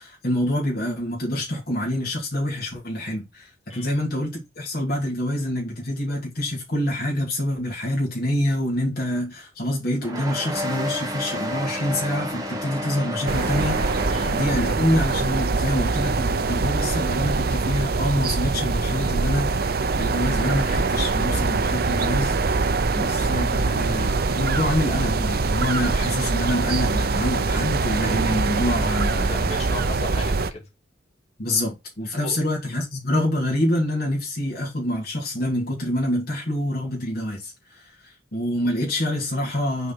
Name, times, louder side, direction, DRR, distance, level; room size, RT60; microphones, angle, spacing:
voice 1, 0.0-22.7 23.0-29.5 31.4-39.9, left 1 dB, 50° left, 2.4 m, -26 dB
sound 1, 10.0-15.1, equal, 20° right, 1.7 m, -31 dB
sound 2, 13.3-30.5, right 3 dB, 50° right, 0.6 m, -23 dB
voice 2, 29.1-30.6 32.2-32.4, left 1 dB, 35° left, 2.7 m, -36 dB
6.4 x 4.3 x 5.5 m
head